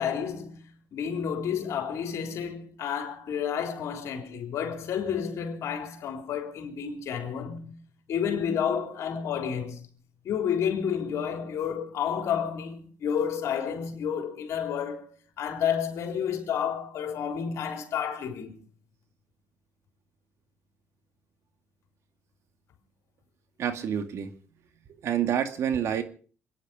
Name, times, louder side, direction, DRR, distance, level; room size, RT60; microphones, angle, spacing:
voice 1, 0.0-7.8 8.1-9.9 10.2-15.1 15.4-18.6, left 8 dB, 70° left, 3.8 m, -30 dB
voice 2, 23.6-24.3 25.0-26.0, right 9 dB, 65° right, 2.2 m, -28 dB
27.5 x 10.5 x 5.1 m
cardioid pair, 95°, 5 cm